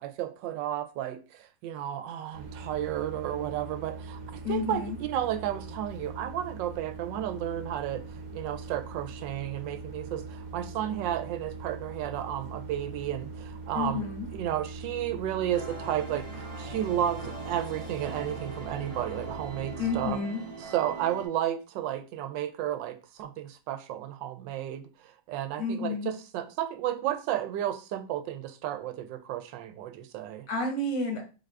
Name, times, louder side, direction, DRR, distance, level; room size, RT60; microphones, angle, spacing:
voice 1, 0.0-8.0 8.3-14.0 14.3-20.2 20.6-30.5, right 11 dB, 85° right, 1.3 m, -33 dB
sound 1, 2.3-20.2, right 3 dB, 60° right, 1.1 m, -42 dB
voice 2, 4.4-5.0 13.7-14.3 19.8-20.4 25.6-26.1 30.5-31.2, left 3 dB, 75° left, 1.8 m, -30 dB
sound 2, 15.5-21.3, right 3 dB, 40° right, 0.5 m, -41 dB
4.5 x 2.4 x 3.3 m
omnidirectional pair, 1.9 m